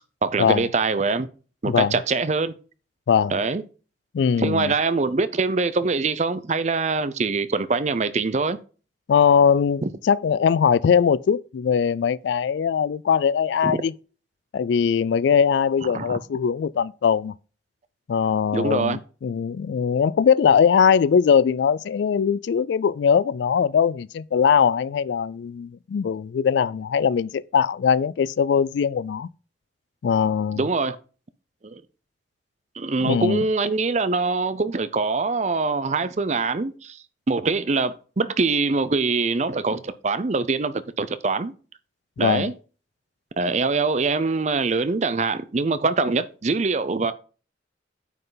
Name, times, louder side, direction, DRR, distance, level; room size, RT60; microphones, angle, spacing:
voice 1, 0.2-1.3 1.6-2.5 3.3-3.6 4.4-8.6 9.8-9.9 13.6-13.8 15.9-16.2 18.5-19.0 30.6-31.0 31.6-31.8 32.8-37.0 37.3-41.5 42.2-42.5 43.4-47.1, right 3 dB, 40° right, 0.5 m, -23 dB
voice 2, 4.1-4.7 9.1-13.9 14.5-17.3 18.1-29.3 30.0-30.6 33.0-33.4 42.2-42.5, left 7 dB, 80° left, 0.3 m, -21 dB
9.3 x 5.6 x 3.9 m
head